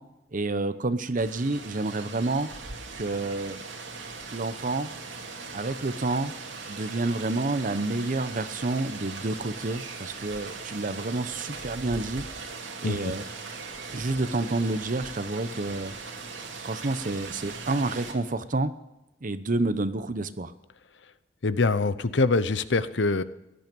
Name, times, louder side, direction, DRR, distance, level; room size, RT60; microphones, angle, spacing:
voice 1, 0.3-2.5 2.9-3.6 4.3-4.9 5.5-6.3 6.7-12.2 12.8-13.2 13.9-15.9 16.6-18.7 19.2-20.5, right 2 dB, 45° right, 12 dB, 0.9 m, -29 dB
Rain, 1.2-18.1, right 4 dB, 85° right, 2.7 m, -39 dB
voice 2, 21.4-23.2, left 3 dB, 70° left, 14 dB, 0.8 m, -24 dB
16.5 x 12.0 x 5.3 m, 0.94 s
head